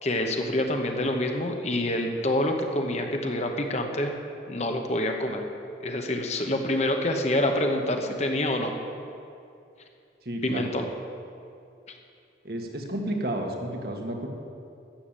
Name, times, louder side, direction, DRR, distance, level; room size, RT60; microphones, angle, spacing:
voice 1, 0.0-4.2 4.5-5.4 5.8-8.7 10.4-10.9 11.9-12.0, left 1 dB, 40° left, 4 dB, 1.1 m, -27 dB
voice 2, 10.2-10.7 12.4-14.3, right 1 dB, 60° right, 2 dB, 1.6 m, -31 dB
13.5 x 7.2 x 8.8 m, 2.5 s
head